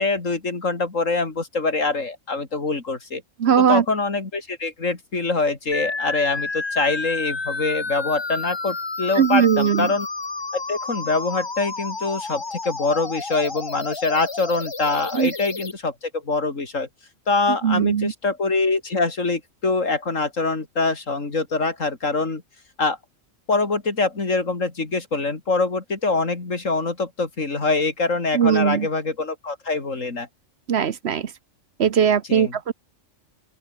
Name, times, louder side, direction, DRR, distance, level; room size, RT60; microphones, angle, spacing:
voice 1, 0.0-3.2 3.6-10.1 10.5-16.9 17.3-22.4 22.8-23.0 23.5-30.3 32.3-32.5, left 3 dB, 80° left, 3.6 m, -24 dB
voice 2, 3.4-3.8 9.2-9.9 15.1-15.3 17.6-18.1 28.3-28.9 30.7-31.3 31.8-32.7, right 8 dB, 60° right, 1.1 m, -19 dB
sound 1, 5.7-15.7, left 3 dB, 25° left, 0.9 m, -31 dB
open air
omnidirectional pair, 1.3 m